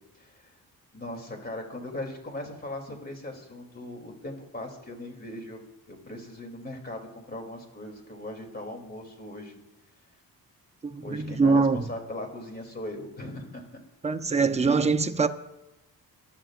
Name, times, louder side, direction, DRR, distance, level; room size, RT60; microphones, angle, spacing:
voice 1, 0.1-0.5 0.9-5.6 5.9-9.6 11.0-13.7, left 1 dB, 25° left, 3.0 m, -39 dB
voice 2, 10.8-11.8 14.0-15.3, right 4 dB, 20° right, 0.6 m, -23 dB
27.5 x 12.5 x 2.5 m
cardioid pair, 115°, 37 cm